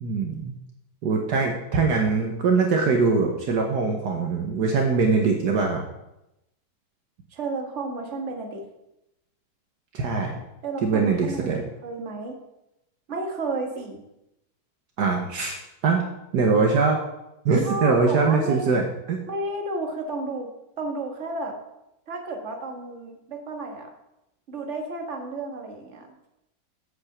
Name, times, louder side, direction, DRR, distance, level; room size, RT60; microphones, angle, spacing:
voice 1, 0.0-0.5 1.0-5.9 9.9-10.3 10.8-11.6 15.0-15.6 15.8-16.1 16.3-17.0 17.5-19.2, right 4 dB, 65° right, 1 dB, 1.6 m, -22 dB
voice 2, 7.3-8.6 10.6-12.4 13.1-14.0 17.6-18.8 19.3-20.5 20.8-21.6 22.1-23.9 24.5-26.1, right 2 dB, 40° right, 3 dB, 1.8 m, -32 dB
8.0 x 6.2 x 7.2 m, 0.89 s
omnidirectional pair, 1.9 m